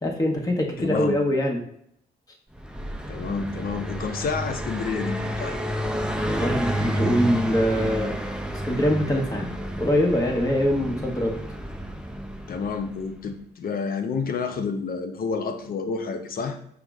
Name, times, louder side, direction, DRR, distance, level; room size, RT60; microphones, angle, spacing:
voice 1, 0.0-1.6 6.2-8.2 8.6-9.5 9.8-11.3, equal, 20° left, 0 dB, 1.0 m, -23 dB
voice 2, 0.8-1.2 3.1-5.6 12.5-16.6, left 5 dB, 50° left, 6 dB, 0.5 m, -29 dB
Car passing by, 2.5-13.1, equal, 5° right, 0.4 m, -30 dB
5.6 x 2.0 x 2.3 m, 0.69 s
supercardioid pair, 60°, 19 cm